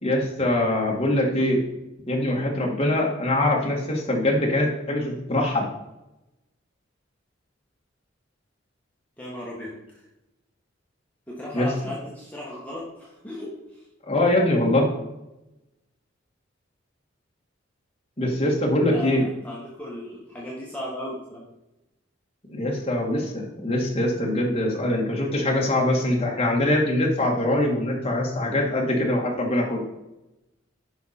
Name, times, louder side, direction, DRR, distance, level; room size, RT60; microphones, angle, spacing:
voice 1, 0.0-1.6 2.1-5.6 11.5-11.7 14.1-14.9 18.2-19.2 22.5-29.8, left 1 dB, 30° left, -1 dB, 2.0 m, -23 dB
voice 2, 9.2-10.1 11.3-13.9 18.9-21.4, left 1 dB, 10° left, -6 dB, 1.7 m, -36 dB
10.5 x 5.8 x 4.3 m, 0.95 s
head